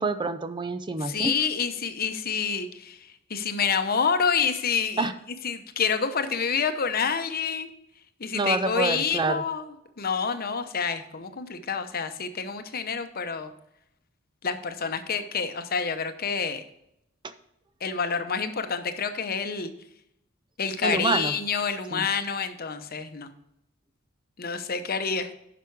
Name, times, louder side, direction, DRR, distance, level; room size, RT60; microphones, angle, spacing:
voice 1, 0.0-1.3 5.0-5.1 8.3-9.4 20.8-21.4 21.9-22.1, right 3 dB, 25° right, 10 dB, 0.5 m, -27 dB
voice 2, 1.0-3.0 3.3-5.1 5.4-7.7 8.2-9.6 10.0-13.5 14.4-16.6 17.8-19.7 20.6-23.3 24.4-25.3, left 6 dB, 50° left, 9 dB, 0.9 m, -28 dB
10.5 x 6.0 x 4.7 m, 0.79 s
head